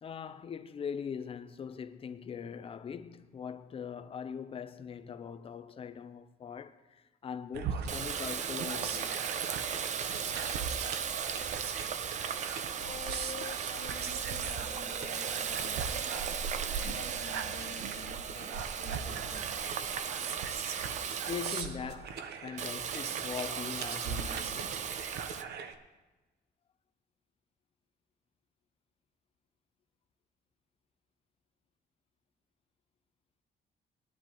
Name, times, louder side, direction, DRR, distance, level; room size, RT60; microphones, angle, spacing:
voice 1, 0.0-9.3 21.3-24.8, left 7 dB, 35° left, 0.6 m, -41 dB
sound 1, 7.5-25.7, right 6 dB, 80° right, 0.9 m, -41 dB
Water tap faucet, 7.9-21.6 22.6-25.4, right 7 dB, 45° right, 0.5 m, -36 dB
voice 2, 12.8-16.1 16.7-19.6, left 6 dB, 60° left, 1.2 m, -48 dB
20.5 x 10.5 x 3.0 m
cardioid pair, 160°, 17 cm